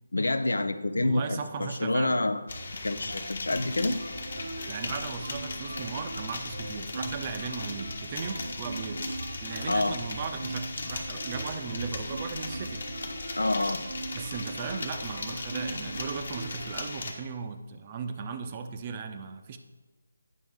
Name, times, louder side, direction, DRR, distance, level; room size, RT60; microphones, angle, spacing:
voice 1, 0.1-2.4 2.8-4.0 9.7-10.0 13.4-13.8, left 2 dB, 90° left, 12 dB, 0.5 m, -27 dB
voice 2, 1.0-2.2 4.7-9.1 9.4-12.9 14.1-19.6, right 5 dB, 25° right, 7 dB, 0.5 m, -37 dB
sound 1, 2.5-17.1, left 3 dB, 60° left, 1.2 m, -38 dB
sound 2, 3.1-16.8, right 3 dB, 70° right, 0.6 m, -41 dB
9.2 x 6.0 x 3.6 m, 1.2 s
figure-of-eight pair, 165°, 0 cm